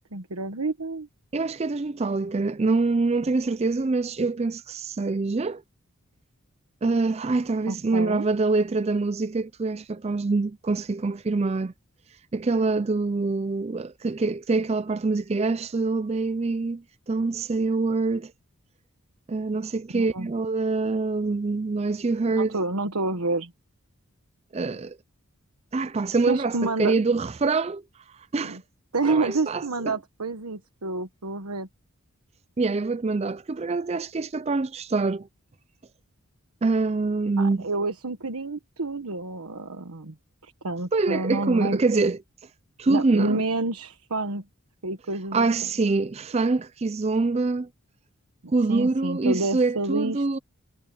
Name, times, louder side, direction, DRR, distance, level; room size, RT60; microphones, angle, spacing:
voice 1, 0.1-1.1 7.7-8.2 19.9-20.3 22.4-23.5 26.3-27.0 28.4-28.6 28.9-31.7 37.4-40.1 40.4-41.8 42.9-44.4 44.8-45.7 48.7-50.4, right 2 dB, 90° right, 1.3 m, -29 dB
voice 2, 1.3-5.6 6.8-11.7 12.3-18.3 19.3-22.5 24.5-25.0 25.7-27.8 28.3-28.6 29.0-30.0 32.6-35.3 36.6-37.7 40.9-42.2 42.8-43.4 45.3-47.7 48.5-50.4, right 3 dB, 30° right, 0.4 m, -25 dB
head